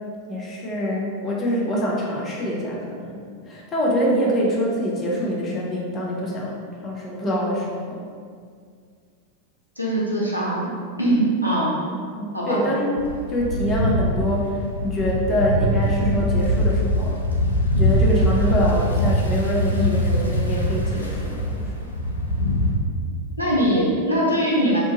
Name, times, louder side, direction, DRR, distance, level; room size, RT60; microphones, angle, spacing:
voice 1, 0.3-3.2 3.5-6.5 6.8-8.0 12.2-12.9 13.3-17.1 17.7-21.7, equal, 25° left, -3 dB, 0.6 m, -25 dB
voice 2, 9.8-10.7 11.0-11.8 12.3-12.6 23.4-24.8, right 1 dB, 90° right, -6 dB, 0.6 m, -21 dB
sound 1, 13.0-22.7, equal, 75° left, 0.3 m, -22 dB
2.9 x 2.2 x 2.7 m, 2.1 s
figure-of-eight pair, 90°, 0 cm